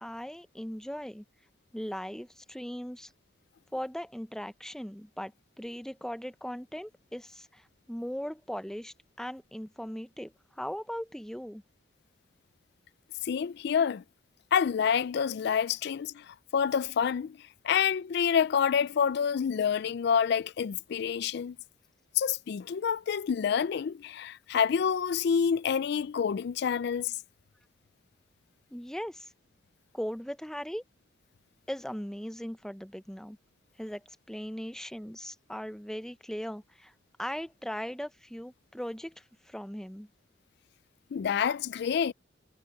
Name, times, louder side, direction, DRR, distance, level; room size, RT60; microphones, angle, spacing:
voice 1, 0.0-1.2 1.7-3.1 3.7-5.3 5.6-11.6 28.7-29.3 29.9-30.8 31.7-33.4 33.8-36.9 37.2-40.1, equal, 5° left, 0.7 m, -39 dB
voice 2, 13.2-14.0 14.5-17.4 17.6-21.6 22.2-27.1 41.1-42.1, left 7 dB, 60° left, 0.4 m, -28 dB
head